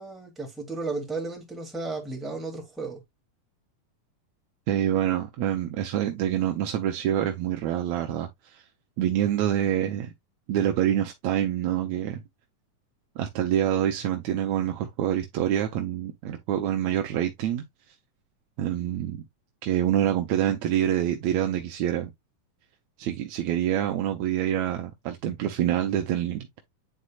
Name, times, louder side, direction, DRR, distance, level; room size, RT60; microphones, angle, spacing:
voice 1, 0.0-3.0, right 3 dB, ahead, 1.9 m, -34 dB
voice 2, 4.7-8.6 9.0-10.1 10.5-12.2 13.2-17.6 18.6-19.2 19.6-22.1 23.0-26.5, right 11 dB, 70° right, 1.9 m, -26 dB
9.7 x 4.2 x 2.4 m
omnidirectional pair, 3.9 m